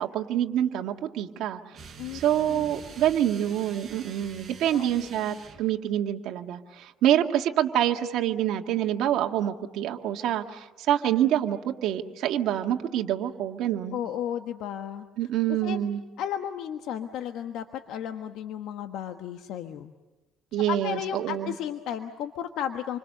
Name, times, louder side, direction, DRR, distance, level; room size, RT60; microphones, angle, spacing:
voice 1, 0.0-1.6 2.1-14.0 15.2-16.0 20.5-21.5, right 11 dB, 70° right, 4 dB, 1.9 m, -26 dB
sound 1, 1.7-5.7, right 5 dB, 30° right, 5.2 m, -46 dB
voice 2, 13.9-15.1 15.5-15.8 16.2-19.9 20.7-23.0, left 9 dB, 75° left, 6 dB, 1.3 m, -34 dB
28.0 x 25.0 x 6.7 m, 1.1 s
cardioid pair, 135°, 0 cm